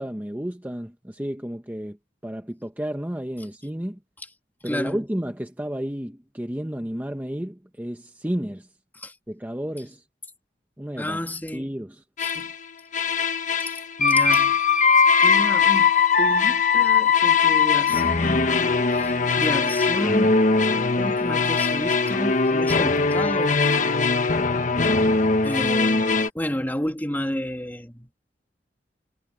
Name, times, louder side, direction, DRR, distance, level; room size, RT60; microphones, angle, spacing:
voice 1, 0.0-2.0 2.2-4.0 4.6-8.7 9.3-10.0 10.8-11.2 11.5-12.0, equal, 10° right, 1.1 m, -31 dB
voice 2, 4.6-5.1 9.0-9.1 11.0-11.7 12.2-12.5 13.6-14.6 15.2-15.9 16.2-18.5 18.9-20.4 20.7-23.7 24.8-25.0 25.4-28.1, equal, 10° left, 2.6 m, -31 dB
sound 1, 12.2-12.6 12.9-26.3, left 5 dB, 45° left, 1.3 m, -20 dB
head